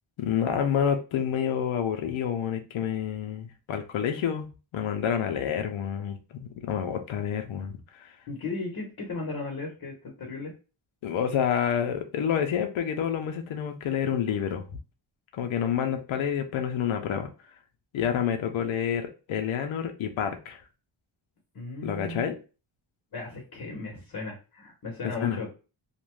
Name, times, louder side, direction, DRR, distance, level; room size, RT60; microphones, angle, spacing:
voice 1, 0.2-4.5 4.7-8.1 11.0-14.6 15.3-17.3 17.9-20.6 21.8-22.4 25.2-25.4, left 8 dB, 75° left, 5 dB, 0.6 m, -28 dB
voice 2, 8.3-10.5 21.5-22.2 23.1-25.5, left 3 dB, 50° left, -1 dB, 0.8 m, -36 dB
2.5 x 2.2 x 3.1 m, 0.33 s
wide cardioid pair, 170°, 48 cm